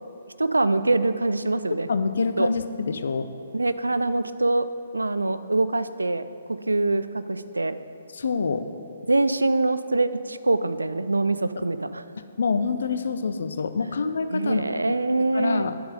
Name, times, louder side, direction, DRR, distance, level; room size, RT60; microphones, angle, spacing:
voice 1, 0.4-1.9 2.4-2.5 3.5-4.7 4.9-6.3 6.7-7.8 9.1-12.0 14.3-15.7, right 2 dB, 75° right, 13 dB, 0.4 m, -24 dB
voice 2, 1.9-3.3 8.1-8.7 11.6-11.7 12.2-14.7 15.3-15.8, left 5 dB, 60° left, 10 dB, 0.5 m, -26 dB
9.5 x 7.5 x 4.8 m, 2.6 s
figure-of-eight pair, 130°, 0 cm